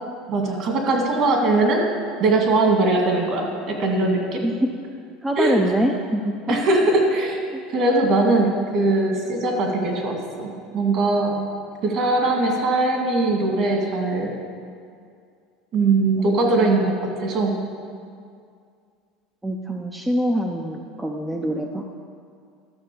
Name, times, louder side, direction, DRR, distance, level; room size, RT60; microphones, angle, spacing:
voice 1, 0.3-1.8 2.2-4.4 5.4-5.6 6.5-7.3 7.7-11.5 11.8-14.3 15.7-16.9 17.2-17.6, right 2 dB, 45° right, 1 dB, 2.2 m, -20 dB
voice 2, 5.2-6.6 7.5-7.6 19.4-21.9, equal, 5° right, 2 dB, 0.6 m, -24 dB
12.5 x 6.4 x 6.9 m, 2.3 s
supercardioid pair, 140°, 0 cm